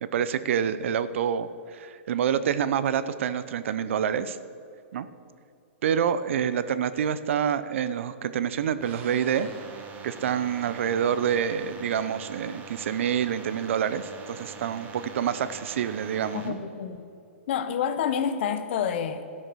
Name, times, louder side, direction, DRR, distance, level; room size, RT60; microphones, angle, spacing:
voice 1, 0.0-4.4 4.9-5.1 5.8-9.5 10.0-16.6, right 8 dB, 65° right, 14 dB, 0.6 m, -27 dB
sound 1, 8.8-16.5, right 4 dB, 20° right, 1.1 m, -43 dB
voice 2, 16.3-17.1 17.5-19.3, left 8 dB, 55° left, 10 dB, 0.9 m, -28 dB
12.5 x 6.3 x 6.2 m, 2.5 s
hypercardioid pair, 150°, 7 cm